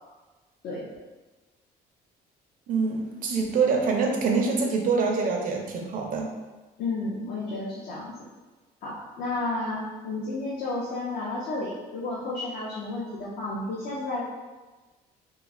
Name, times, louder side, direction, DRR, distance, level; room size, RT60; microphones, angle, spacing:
voice 1, 2.7-6.3, right 4 dB, 55° right, 1 dB, 0.5 m, -25 dB
voice 2, 6.8-8.2 8.8-14.2, left 2 dB, 60° left, -5 dB, 0.5 m, -32 dB
3.0 x 2.3 x 2.4 m, 1.2 s
cardioid pair, 110°, 17 cm